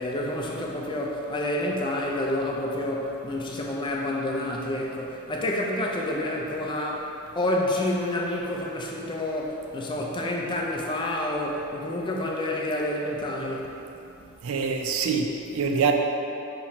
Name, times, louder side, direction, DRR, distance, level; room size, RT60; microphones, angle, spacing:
voice 1, 0.0-7.1 7.4-13.7, left 1 dB, 20° left, -1 dB, 0.4 m, -28 dB
voice 2, 14.4-15.9, right 5 dB, 70° right, 3 dB, 0.4 m, -25 dB
4.1 x 3.0 x 4.2 m, 2.8 s
head